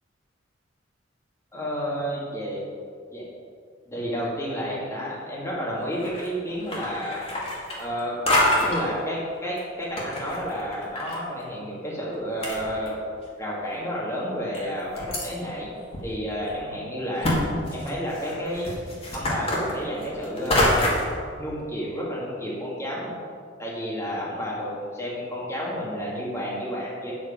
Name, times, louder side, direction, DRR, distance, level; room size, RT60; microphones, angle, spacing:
voice 1, 1.5-2.6 3.1-3.2 3.9-7.2 7.8-8.2 8.5-13.0 13.4-15.7 16.0-17.4 17.7-18.8 19.1-20.8 21.4-23.1 23.6-24.7 25.0-27.1, equal, 15° left, -6 dB, 2.2 m, -31 dB
sound 1, 5.9-6.3 6.6-8.0 8.3-8.8 9.6-11.2 11.4-11.5 12.1-12.2 12.4-13.2 13.8-13.9 14.5-15.3 15.9-16.0 16.4-16.5 17.2-17.4 17.7-21.1, left 1 dB, 30° left, 2.2 m, -26 dB
9.3 x 7.7 x 5.1 m, 2.2 s
head